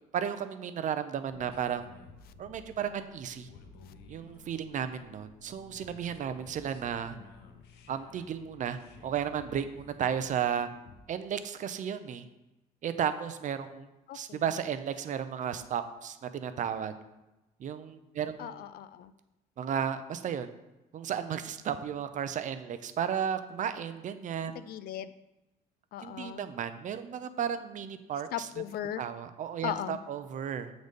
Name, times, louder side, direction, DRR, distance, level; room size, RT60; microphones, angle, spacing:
voice 1, 0.1-1.9 2.4-3.5 4.1-7.2 7.9-10.7 11.1-12.2 12.8-13.9 14.1-16.9 17.6-18.7 19.6-20.5 20.9-24.6 26.0-28.5 29.0-30.7, right 8 dB, 50° right, 10 dB, 0.6 m, -34 dB
sound 1, 1.3-11.0, left 4 dB, 80° left, 0.9 m, -54 dB
voice 2, 14.1-14.4 18.4-19.1 24.6-25.1 25.9-26.4 28.3-29.0 29.6-30.0, left 11 dB, 65° left, 14 dB, 0.4 m, -37 dB
7.9 x 4.0 x 5.2 m, 0.99 s
cardioid pair, 110°, 17 cm